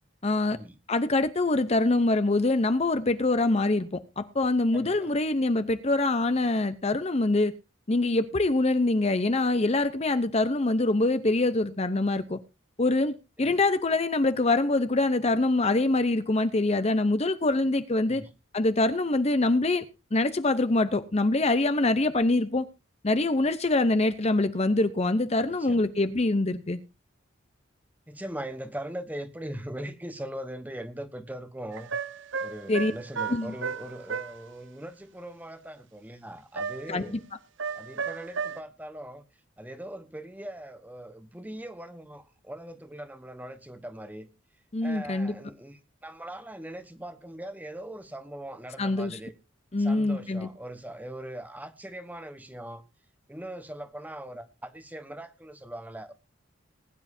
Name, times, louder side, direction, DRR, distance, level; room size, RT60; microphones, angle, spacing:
voice 1, 0.2-0.6 0.9-7.5 7.9-12.4 12.8-18.2 18.5-19.8 20.1-22.7 23.0-26.8 32.7-32.9 33.3-33.5 36.9-37.2 44.7-45.3 48.8-49.2 49.7-50.5, left 2 dB, 30° left, 0.7 m, -24 dB
voice 2, 4.7-5.1 13.4-13.6 18.1-18.3 25.5-25.9 28.1-31.9 32.4-37.2 37.7-39.2 39.6-44.3 44.8-49.3 49.8-52.8 53.3-56.1, right 1 dB, 10° right, 1.1 m, -40 dB
sound 1, 31.7-34.4 36.6-37.1 37.6-38.6, right 6 dB, 60° right, 0.8 m, -34 dB
20.5 x 10.5 x 2.7 m
head